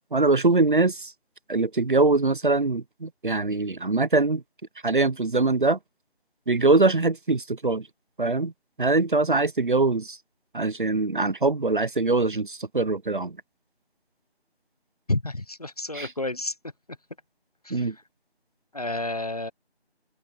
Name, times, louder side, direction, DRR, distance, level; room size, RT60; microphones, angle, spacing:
voice 1, 0.1-1.1 1.5-4.4 4.8-5.8 6.5-7.9 8.2-8.5 8.8-10.2 10.5-13.4 15.9-16.1 17.7-17.9, right 3 dB, 50° right, 0.9 m, -23 dB
voice 2, 15.1-16.5 17.6-17.9 18.7-19.5, left 2 dB, 35° left, 1.0 m, -30 dB
open air
figure-of-eight pair, 175°, 33 cm